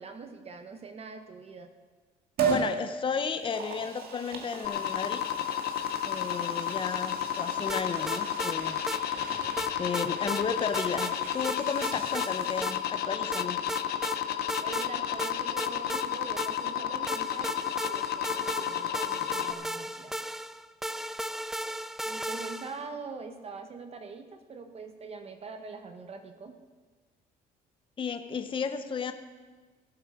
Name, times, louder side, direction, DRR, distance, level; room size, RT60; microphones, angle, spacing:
voice 1, 0.0-1.7 14.6-20.3 22.1-26.6, right 4 dB, 35° right, 7 dB, 1.0 m, -43 dB
Liquid, 2.4-2.7 3.3-12.9 13.3-13.4, right 6 dB, 65° right, 2.1 m, -37 dB
voice 2, 2.5-5.3 6.1-8.8 9.8-13.6 28.0-29.1, left 6 dB, 30° left, 8 dB, 0.8 m, -33 dB
sound 1, 4.6-19.5, left 10 dB, 70° left, 0.9 m, -32 dB
sound 2, 7.7-8.6 8.9-9.0 9.6-10.4 10.7-11.1 11.4-12.3 12.6-12.8 13.3-14.2 14.5-14.9 15.2-16.7 17.1-22.8, right 1 dB, ahead, 0.3 m, -35 dB
17.5 x 8.2 x 4.8 m, 1.4 s
cardioid pair, 110°, 17 cm